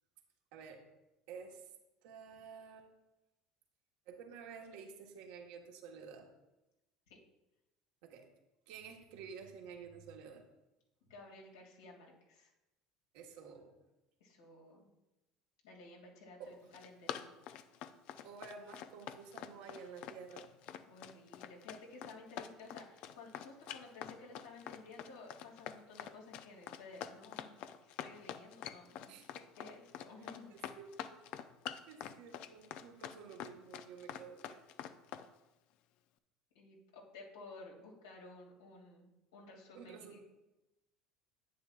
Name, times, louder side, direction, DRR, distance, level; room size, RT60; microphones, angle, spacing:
voice 1, 0.5-0.8 1.3-1.7 2.0-2.9 4.1-6.3 8.0-8.3 8.7-10.4 13.1-13.7 16.4-16.6 18.2-20.5 29.1-29.7 30.2-31.3 31.8-34.6 39.7-40.2, right 6 dB, 70° right, 2 dB, 1.5 m, -51 dB
voice 2, 11.1-12.5 14.2-14.9 15.6-17.3 20.9-29.1 29.6-30.7 36.5-39.1 39.3-40.2, left 3 dB, 85° left, -2 dB, 2.6 m, -54 dB
Run, 16.5-35.3, left 10 dB, 65° left, 0.6 m, -46 dB
10.0 x 9.0 x 2.5 m, 0.98 s
hypercardioid pair, 75°, 2 cm